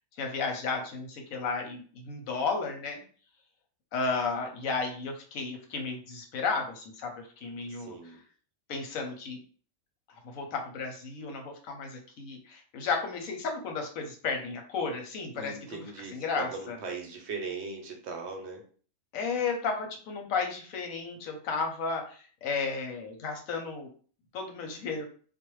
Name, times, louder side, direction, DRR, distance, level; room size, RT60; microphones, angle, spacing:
voice 1, 0.2-3.0 3.9-8.2 8.7-9.4 10.1-15.8 16.1-16.8 19.1-23.9 24.3-25.1, left 4 dB, 90° left, 3 dB, 1.1 m, -33 dB
voice 2, 7.7-8.2 15.3-18.6, right 4 dB, 65° right, 3 dB, 0.8 m, -39 dB
2.5 x 2.1 x 3.0 m, 0.43 s
omnidirectional pair, 1.4 m